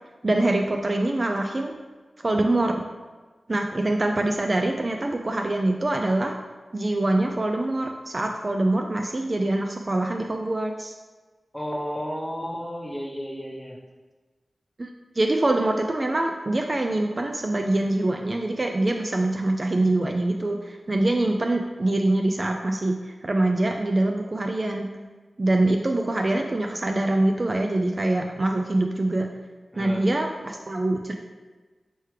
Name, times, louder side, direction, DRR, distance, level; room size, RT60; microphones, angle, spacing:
voice 1, 0.2-1.7 2.2-2.7 3.5-6.3 6.7-10.9 14.8-14.9 15.2-24.9 25.4-29.3 29.8-31.1, right 2 dB, 45° right, 3 dB, 0.3 m, -24 dB
voice 2, 11.5-13.8 29.7-30.1, equal, 5° left, -2 dB, 0.8 m, -32 dB
4.5 x 3.2 x 3.2 m, 1.3 s
cardioid pair, 55°, 0 cm